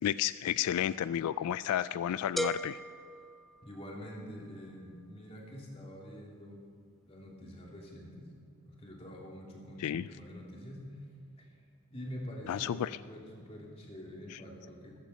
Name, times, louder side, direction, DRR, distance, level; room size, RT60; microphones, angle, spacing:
voice 1, 0.0-2.8 9.8-10.0 12.5-13.0 14.3-14.4, left 10 dB, 85° left, 15 dB, 0.3 m, -32 dB
sound 1, 2.4-4.2, right 1 dB, ahead, 0.3 m, -38 dB
voice 2, 3.6-6.6 7.0-8.3 8.6-11.0 11.4-11.5 11.9-15.0, equal, 25° left, -2 dB, 3.0 m, -46 dB
15.0 x 14.5 x 5.8 m, 2.3 s
head